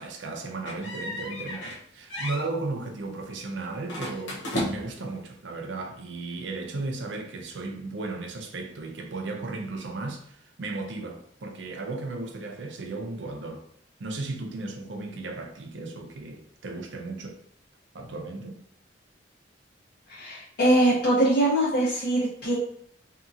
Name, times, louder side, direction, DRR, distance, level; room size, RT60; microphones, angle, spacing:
voice 1, 0.0-13.6 14.0-17.4 17.9-18.6, right 3 dB, 80° right, 0.5 m, -35 dB
sound 1, 0.6-1.8 2.1-2.5 3.9-5.1, left 1 dB, 85° left, 0.8 m, -33 dB
voice 2, 20.1-22.5, right 1 dB, 60° left, 1.1 m, -22 dB
2.8 x 2.7 x 2.4 m
head